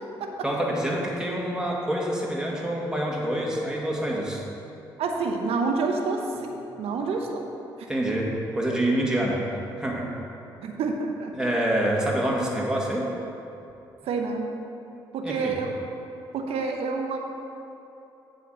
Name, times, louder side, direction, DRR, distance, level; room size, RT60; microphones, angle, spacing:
voice 1, 0.4-4.4 7.9-9.4 9.8-10.1 11.3-13.1 15.2-15.6, right 1 dB, 5° right, -4 dB, 2.0 m, -26 dB
voice 2, 5.0-7.4 10.6-11.3 14.0-14.5 15.1-15.8 16.3-17.2, right 4 dB, 65° right, 3 dB, 0.8 m, -28 dB
7.8 x 4.3 x 6.5 m, 2.8 s
hypercardioid pair, 50°, 11 cm